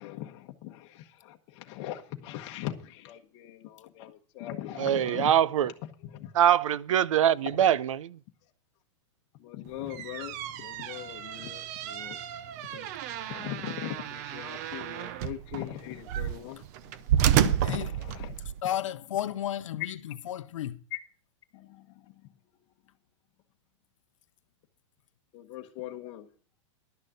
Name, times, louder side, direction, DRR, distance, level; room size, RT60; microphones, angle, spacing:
voice 1, 0.0-5.7 6.0-6.3 7.6-7.7 9.4-12.2 12.7-12.9 13.3-17.0 17.3-18.4 20.9-21.0 21.5-22.3 25.3-26.3, left 13 dB, 30° left, 1.2 m, -40 dB
voice 2, 4.8-5.7 6.4-8.2, right 10 dB, 80° right, 0.6 m, -23 dB
sound 1, 9.7-18.6, right 11 dB, 30° right, 0.5 m, -31 dB
voice 3, 18.6-20.8, left 11 dB, 75° left, 0.7 m, -33 dB
11.5 x 6.5 x 7.8 m
supercardioid pair, 170°, 16 cm